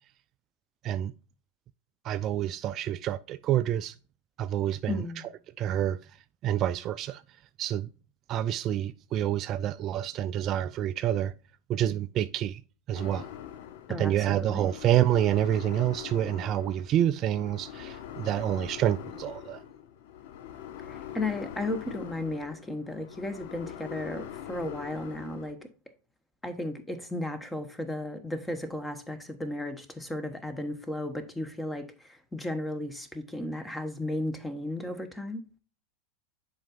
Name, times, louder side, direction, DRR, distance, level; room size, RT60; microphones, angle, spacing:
voice 1, 2.0-3.9 4.4-5.2 5.6-6.2 6.4-7.2 7.6-7.9 8.3-11.3 11.7-12.6 12.9-13.3 14.0-19.6, right 11 dB, 40° right, 0.3 m, -28 dB
voice 2, 4.9-5.2 13.9-14.7 20.9-25.6 26.4-35.4, left 1 dB, 10° left, 1.1 m, -34 dB
sound 1, 13.0-25.5, left 10 dB, 55° left, 0.8 m, -43 dB
10.0 x 4.7 x 2.5 m
figure-of-eight pair, 85°, 0 cm